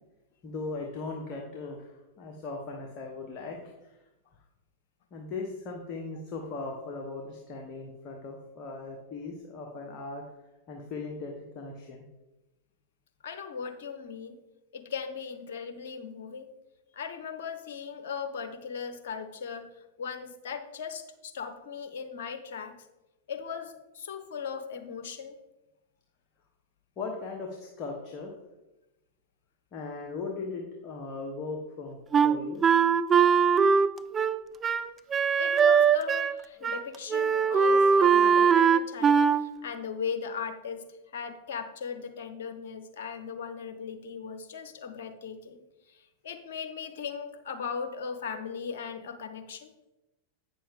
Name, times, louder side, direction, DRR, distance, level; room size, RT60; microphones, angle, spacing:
voice 1, 0.4-3.9 5.1-10.2 10.7-12.1 27.0-28.3 29.7-32.0 32.2-32.6, left 3 dB, 40° left, 0 dB, 1.3 m, -38 dB
voice 2, 13.2-14.4 14.7-16.5 16.9-22.8 23.3-25.4 35.4-40.9 41.1-45.6 45.9-49.7, left 6 dB, 65° left, 8 dB, 1.0 m, -38 dB
Wind instrument woodwind instrument, 32.1-36.4 36.6-36.8 37.1-39.4, right 6 dB, 25° right, 0.4 m, -21 dB
8.8 x 6.7 x 3.7 m, 1.0 s
figure-of-eight pair, 95°, 0 cm